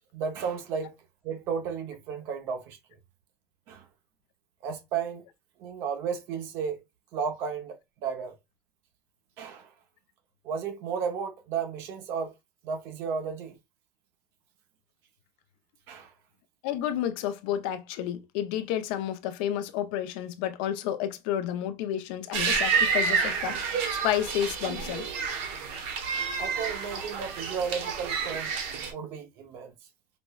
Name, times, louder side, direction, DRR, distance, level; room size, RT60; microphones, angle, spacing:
voice 1, 0.1-1.0 1.2-2.8 3.7-3.9 4.6-5.2 5.6-6.8 7.1-8.3 9.4-9.7 10.4-12.3 12.6-13.6 15.9-16.1 26.4-28.5 28.9-29.7, right 6 dB, 50° right, 0.6 m, -33 dB
voice 2, 16.6-25.1, left 11 dB, 80° left, 0.5 m, -31 dB
sound 1, 22.3-28.9, right 5 dB, 85° right, 0.9 m, -29 dB
5.0 x 2.1 x 2.2 m
cardioid pair, 180°, 5 cm